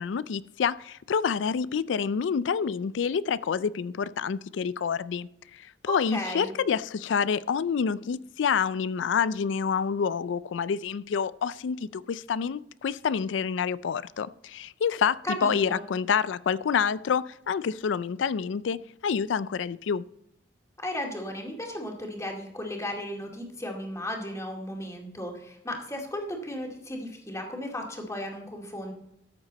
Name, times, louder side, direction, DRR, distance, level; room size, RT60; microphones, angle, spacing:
voice 1, 0.0-20.0, left 6 dB, 80° left, 0.4 m, -28 dB
voice 2, 5.9-6.5 15.2-15.8 20.8-28.9, left 1 dB, 15° left, 2.3 m, -35 dB
13.5 x 8.2 x 4.1 m
head